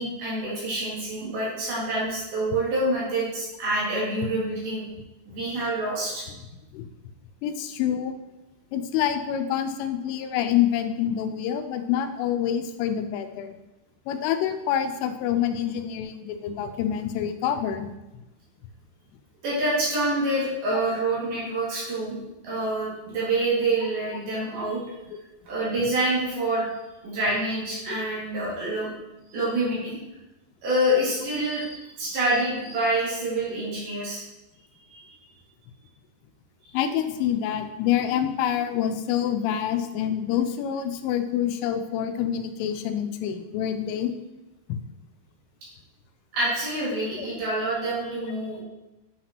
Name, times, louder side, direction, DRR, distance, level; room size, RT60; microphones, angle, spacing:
voice 1, 0.0-4.8 5.3-6.2 19.4-22.2 22.4-24.8 25.5-26.7 27.0-28.9 29.3-30.0 30.6-34.3 34.9-35.1 46.3-48.6, right 1 dB, 55° right, -7 dB, 3.6 m, -27 dB
voice 2, 7.4-8.2 8.7-13.5 14.1-17.9 36.7-44.1 44.7-44.8 47.2-47.3, left 10 dB, 90° left, 7 dB, 3.1 m, -26 dB
9.2 x 5.8 x 2.9 m, 1.0 s
omnidirectional pair, 5.6 m